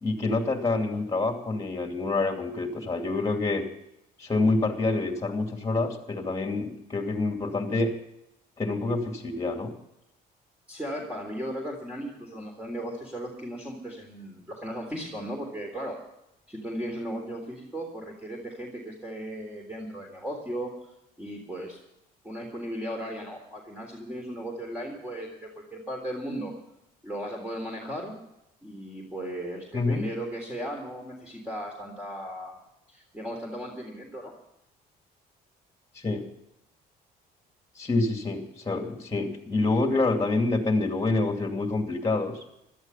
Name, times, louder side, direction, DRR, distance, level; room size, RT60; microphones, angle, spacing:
voice 1, 0.0-3.6 4.2-7.9 8.6-9.7 29.7-30.1 35.9-36.3 37.8-42.4, left 3 dB, 20° left, 4 dB, 2.6 m, -27 dB
voice 2, 10.7-16.0 16.5-20.7 21.2-21.8 22.2-26.5 27.0-28.1 28.6-32.6 32.9-34.3, equal, 10° right, 0 dB, 3.6 m, -36 dB
16.5 x 12.5 x 5.7 m, 0.85 s
cardioid pair, 110°, 17 cm